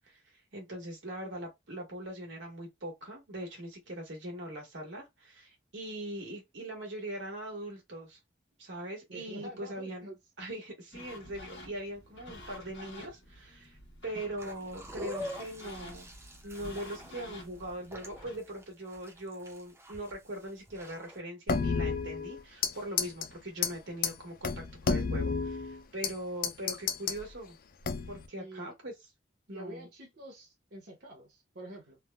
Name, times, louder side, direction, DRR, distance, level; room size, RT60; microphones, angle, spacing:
voice 1, 0.5-8.2 8.6-10.1 10.4-13.8 14.0-16.1 16.4-27.6 28.1-28.9 29.5-29.9, right 1 dB, 90° right, 1.3 m, -41 dB
voice 2, 9.1-10.2 28.4-28.7 29.5-32.0, right 1 dB, 60° right, 0.8 m, -47 dB
sound 1, 10.9-18.4, left 1 dB, 70° left, 1.1 m, -50 dB
sound 2, 14.4-21.2, equal, 15° right, 0.5 m, -45 dB
sound 3, 21.5-22.7 23.0-23.3 23.6-23.7 24.0-24.1 24.4-26.1 26.4-27.2 27.8-28.3, left 5 dB, 50° left, 0.4 m, -30 dB
3.2 x 2.1 x 2.3 m
head